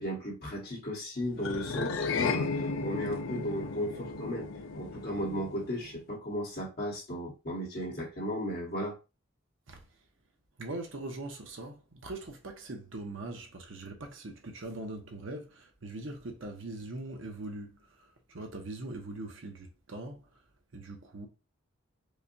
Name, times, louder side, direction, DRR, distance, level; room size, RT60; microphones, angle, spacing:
voice 1, 0.0-4.5 4.7-9.0, equal, 50° left, 1.7 m, -35 dB
sound 1, 1.4-6.0, left 4 dB, 65° left, 0.4 m, -34 dB
voice 2, 10.6-20.2 20.7-21.3, right 2 dB, 65° right, 0.9 m, -41 dB
4.8 x 2.3 x 2.7 m
head